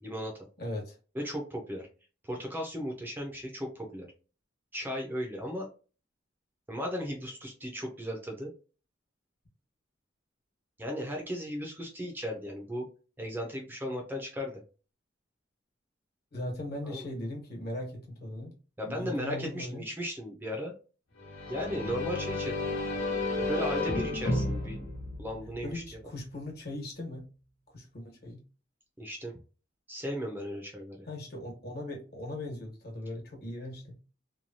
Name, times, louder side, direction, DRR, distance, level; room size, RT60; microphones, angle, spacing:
voice 1, 0.0-0.5 1.1-1.9 2.2-4.1 4.7-5.7 6.7-8.5 10.8-12.9 13.2-14.6 16.8-17.1 18.8-20.7 21.5-22.6 23.4-24.9 25.2-26.0 29.0-29.3 29.9-31.1, equal, 10° right, 0 dB, 0.5 m, -36 dB
voice 2, 0.6-1.0 16.3-18.5 18.8-19.8 25.6-27.2 27.7-28.4 31.1-33.9, left 1 dB, 55° left, -1 dB, 1.3 m, -39 dB
sound 1, 21.2-25.9, left 2 dB, 85° left, 1.2 m, -32 dB
3.0 x 2.2 x 2.6 m, 0.36 s
head